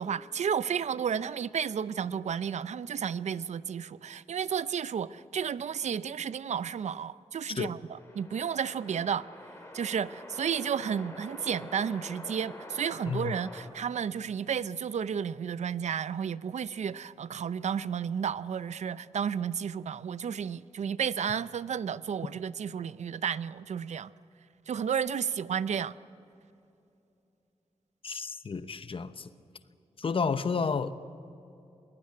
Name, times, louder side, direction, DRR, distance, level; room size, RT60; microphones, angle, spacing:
voice 1, 0.0-9.3 9.7-24.1 24.7-26.0 28.1-28.2, right 7 dB, 80° right, 0.5 m, -32 dB
sound 1, 7.9-13.6, left 1 dB, 20° left, 4.5 m, -46 dB
voice 2, 13.1-13.4 28.0-29.3 30.0-30.9, left 5 dB, 50° left, 0.9 m, -31 dB
21.0 x 18.5 x 9.7 m
wide cardioid pair, 95°, 12 cm